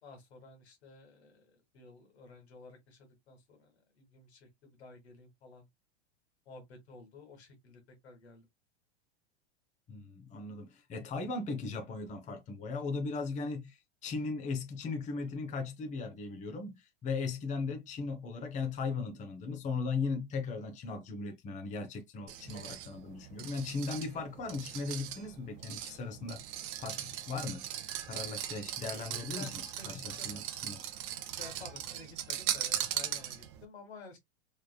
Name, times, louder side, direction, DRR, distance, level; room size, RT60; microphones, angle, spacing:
voice 1, 0.0-5.7 6.5-8.5 29.4-30.4 31.4-34.2, left 3 dB, 75° left, 1.8 m, -53 dB
voice 2, 9.9-27.7 28.0-30.8, left 4 dB, 20° left, 0.8 m, -38 dB
sound 1, 22.3-33.6, right 12 dB, 40° right, 0.6 m, -39 dB
3.4 x 3.3 x 2.2 m
hypercardioid pair, 100°, 33 cm